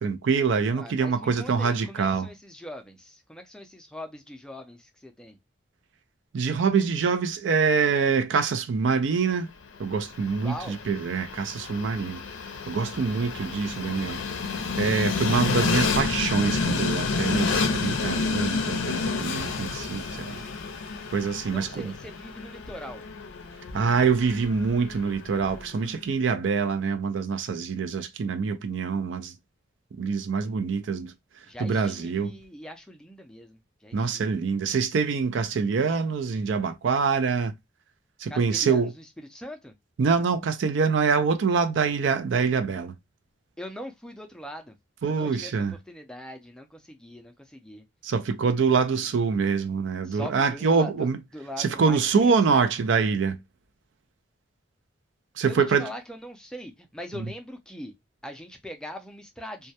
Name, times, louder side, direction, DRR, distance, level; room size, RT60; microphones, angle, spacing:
voice 1, 0.0-2.3 6.3-9.5 9.8-12.2 12.7-14.2 14.8-20.4 21.1-21.9 23.7-29.3 30.0-31.1 31.6-32.3 33.9-37.5 38.2-38.9 40.0-42.9 45.0-45.7 48.0-51.2 51.6-53.4 55.4-55.9 57.2-57.3, right 5 dB, 70° right, 0.4 m, -25 dB
voice 2, 0.7-5.4 10.4-10.8 21.5-23.1 31.5-34.4 38.3-39.0 39.3-39.7 43.6-44.8 45.0-45.5 45.9-47.8 48.7-48.8 50.0-52.7 55.4-57.9 58.2-59.7, equal, 5° left, 0.4 m, -41 dB
Train, 9.7-25.8, left 4 dB, 90° left, 0.5 m, -30 dB
2.2 x 2.1 x 2.7 m
head